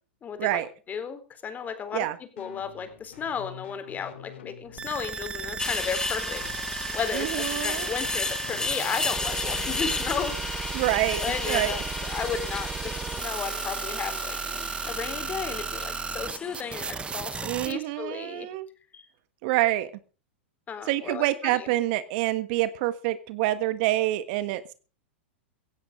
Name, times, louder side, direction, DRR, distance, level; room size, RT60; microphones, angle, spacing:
voice 1, 0.2-0.6 0.9-2.1 2.4-10.7 11.2-18.5 18.9-19.1 20.7-21.7, left 6 dB, 25° left, 10 dB, 3.9 m, -34 dB
sound 1, 2.4-10.5, left 10 dB, 70° left, 2.6 m, -48 dB
sound 2, 4.8-17.7, right 5 dB, 15° right, 0.9 m, -35 dB
sound 3, 5.6-17.5, left 3 dB, 10° left, 1.8 m, -33 dB
voice 2, 7.1-7.9 10.7-11.8 17.4-18.7 19.4-19.9 20.9-24.7, right 15 dB, 55° right, 14 dB, 1.5 m, -27 dB
16.5 x 16.0 x 3.8 m, 0.36 s
hypercardioid pair, 105°, 7 cm